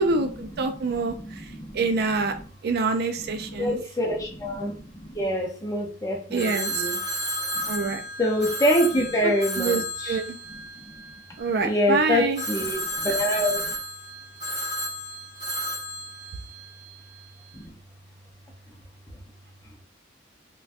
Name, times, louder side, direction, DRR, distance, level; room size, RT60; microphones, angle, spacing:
voice 1, 0.0-1.1 1.7-2.3 2.6-3.8 6.3-6.7 7.7-8.0 9.6-9.8 10.1-10.4 11.4-12.4, right 4 dB, 55° right, 6 dB, 0.4 m, -25 dB
voice 2, 0.6-2.5 3.3-7.0 7.5-10.2 10.5-11.0 11.3-13.7 17.5-17.7, left 1 dB, 20° left, 1 dB, 0.6 m, -27 dB
Telephone, 6.4-11.6 12.4-17.2, equal, 20° right, 1.2 m, -32 dB
3.5 x 2.2 x 2.5 m, 0.40 s
head